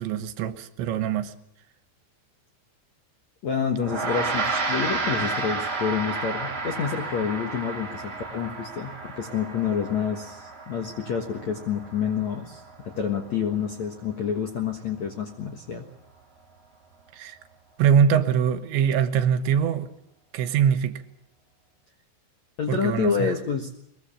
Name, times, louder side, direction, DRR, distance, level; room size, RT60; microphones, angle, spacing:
voice 1, 0.0-1.3 17.1-17.4 17.8-19.9 20.3-21.0 22.7-23.3, right 8 dB, 75° right, 3.3 m, -23 dB
voice 2, 3.4-15.9 22.6-23.7, left 7 dB, 60° left, 1.9 m, -28 dB
Gong, 3.8-13.4, right 3 dB, 25° right, 3.1 m, -32 dB
22.5 x 22.0 x 7.4 m
omnidirectional pair, 5.4 m